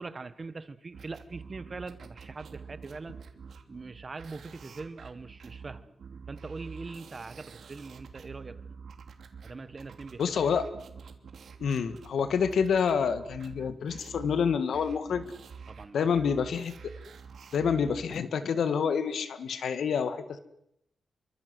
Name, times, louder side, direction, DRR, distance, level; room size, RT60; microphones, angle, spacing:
voice 1, 0.0-3.2 3.7-5.9 6.3-8.8 9.4-10.3 15.7-16.1, right 3 dB, 30° right, 13 dB, 1.4 m, -42 dB
sound 1, 0.9-18.2, right 5 dB, 60° right, 2.9 m, -47 dB
voice 2, 10.2-10.6 11.6-15.3 15.9-16.7 17.5-20.4, left 6 dB, 70° left, 11 dB, 2.0 m, -28 dB
27.5 x 24.5 x 8.0 m, 0.79 s
wide cardioid pair, 170°, 0 cm